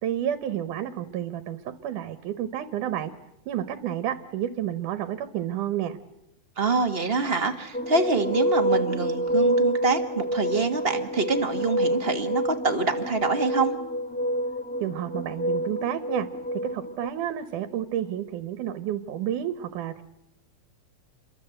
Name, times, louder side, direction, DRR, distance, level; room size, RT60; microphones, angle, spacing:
voice 1, 0.0-3.1 3.5-6.0 14.8-16.3 16.5-20.0, right 11 dB, 85° right, 11 dB, 2.7 m, -30 dB
voice 2, 6.6-13.7, right 4 dB, 25° right, 5 dB, 1.6 m, -25 dB
sound 1, 7.7-17.1, equal, 10° left, 0.5 m, -27 dB
29.0 x 22.5 x 8.0 m, 0.84 s
omnidirectional pair, 3.5 m